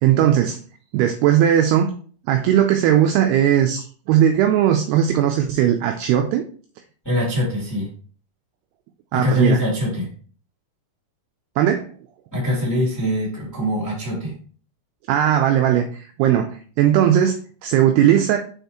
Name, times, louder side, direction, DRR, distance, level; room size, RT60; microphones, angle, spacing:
voice 1, 0.0-0.6 0.9-1.9 2.3-6.5 9.1-9.6 11.6-11.9 15.1-16.5 16.8-18.4, right 10 dB, 85° right, 5 dB, 2.3 m, -18 dB
voice 2, 7.0-7.9 9.1-10.1 12.3-14.3, left 1 dB, 5° left, -4 dB, 1.5 m, -23 dB
6.3 x 5.7 x 3.0 m, 0.43 s
omnidirectional pair, 5.3 m